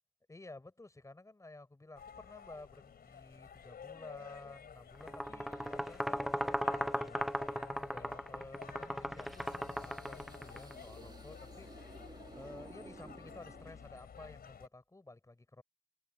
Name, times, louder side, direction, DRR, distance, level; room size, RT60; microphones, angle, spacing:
voice 1, 0.3-15.6, left 2 dB, 15° left, 7.4 m, -53 dB
sound 1, 2.0-14.7, left 7 dB, 50° left, 3.8 m, -52 dB
sound 2, 5.0-10.7, equal, ahead, 0.3 m, -37 dB
sound 3, 9.1-14.2, right 3 dB, 20° right, 2.8 m, -55 dB
cardioid pair, 110°, 20 cm